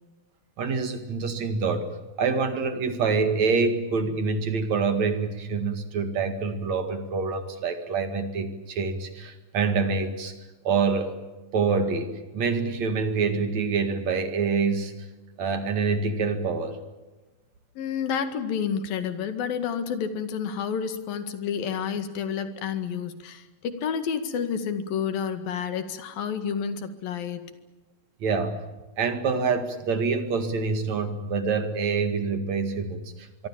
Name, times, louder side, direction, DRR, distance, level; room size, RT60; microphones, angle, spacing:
voice 1, 0.6-1.9 2.2-10.4 10.6-11.1 11.5-14.9 15.4-16.8 28.2-28.6 29.0-33.5, right 4 dB, 55° right, 9 dB, 3.1 m, -26 dB
voice 2, 17.8-27.6, left 7 dB, 85° left, 10 dB, 3.7 m, -30 dB
24.5 x 23.5 x 7.4 m, 1.1 s
omnidirectional pair, 4.0 m